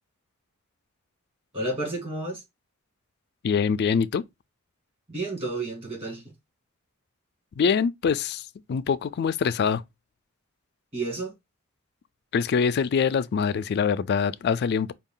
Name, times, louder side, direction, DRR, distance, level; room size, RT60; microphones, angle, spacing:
voice 1, 1.5-2.4 5.1-6.2 10.9-11.3, right 2 dB, 25° right, 2.1 m, -31 dB
voice 2, 3.4-4.2 7.6-9.8 12.3-14.9, left 6 dB, 50° left, 0.3 m, -24 dB
4.7 x 2.3 x 3.7 m
head